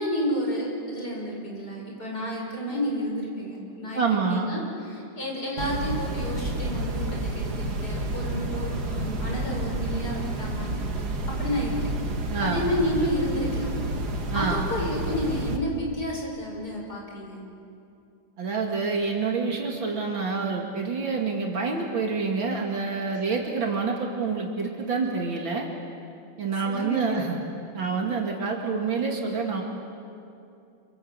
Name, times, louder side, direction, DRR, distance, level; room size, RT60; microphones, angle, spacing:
voice 1, 0.0-10.7 11.3-11.9 12.4-13.7 14.3-17.4 26.6-27.4, equal, 50° left, -2 dB, 7.0 m, -31 dB
voice 2, 3.9-4.5 12.3-12.7 14.3-14.6 18.4-25.7 26.4-27.4 27.7-29.6, right 4 dB, 75° right, 0 dB, 3.1 m, -27 dB
sound 1, 5.6-15.6, right 1 dB, 55° right, 2.2 m, -30 dB
27.0 x 25.5 x 8.1 m, 2.6 s
omnidirectional pair, 2.1 m